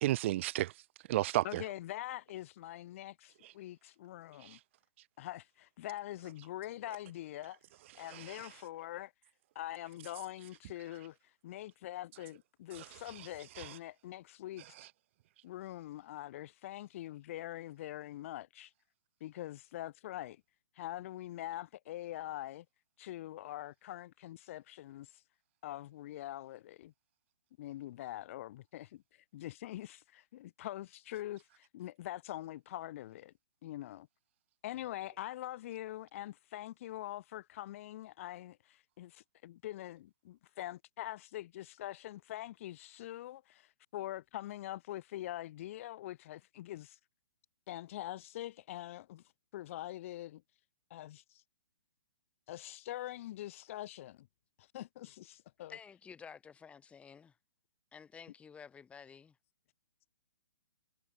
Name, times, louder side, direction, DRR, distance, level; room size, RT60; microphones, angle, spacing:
voice 1, 0.0-0.7 1.1-1.6 3.4-3.5 4.4-4.6 8.1-8.4 12.7-12.9 13.2-13.3 13.6-13.7, right 15 dB, 35° right, 1.0 m, -33 dB
voice 2, 1.4-4.6 5.2-7.6 7.9-9.1 9.5-11.2 11.4-14.7 15.4-18.7 19.2-20.4 20.8-22.7 23.0-25.2 25.6-26.9 27.6-33.3 33.6-34.1 34.6-47.0 47.7-49.2 49.5-50.4 50.9-51.4 52.5-54.3 54.6-55.8, left 14 dB, 40° left, 5.9 m, -44 dB
voice 3, 55.7-57.3 57.9-59.3, left 6 dB, 10° left, 8.0 m, -52 dB
figure-of-eight pair, 125°, 11 cm